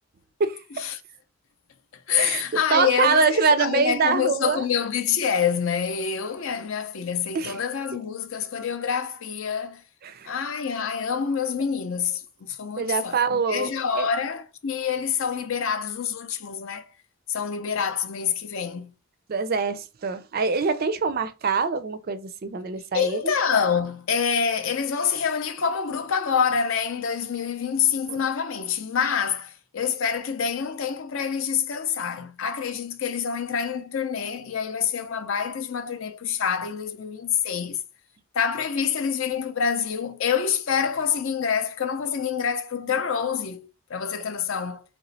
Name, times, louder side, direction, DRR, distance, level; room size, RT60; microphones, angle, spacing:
voice 1, 0.4-0.8 2.2-2.4 2.7-4.6 7.3-7.6 10.0-10.3 12.8-14.1 19.3-23.3 28.1-28.2, right 5 dB, 45° right, 0.4 m, -24 dB
voice 2, 1.9-9.8 10.3-16.9 17.3-18.9 22.9-37.8 38.3-44.8, left 7 dB, 60° left, 0.5 m, -26 dB
3.3 x 3.0 x 3.9 m
head